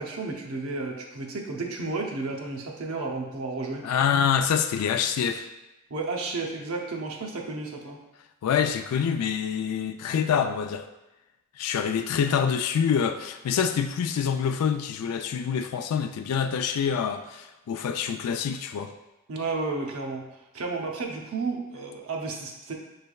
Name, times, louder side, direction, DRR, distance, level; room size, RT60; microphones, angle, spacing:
voice 1, 0.0-3.9 5.9-8.0 19.3-22.7, right 3 dB, 70° right, 1 dB, 0.7 m, -32 dB
voice 2, 3.8-5.5 8.4-10.9 11.6-18.9, left 7 dB, 85° left, 9 dB, 0.3 m, -26 dB
6.3 x 3.3 x 2.3 m, 0.99 s
head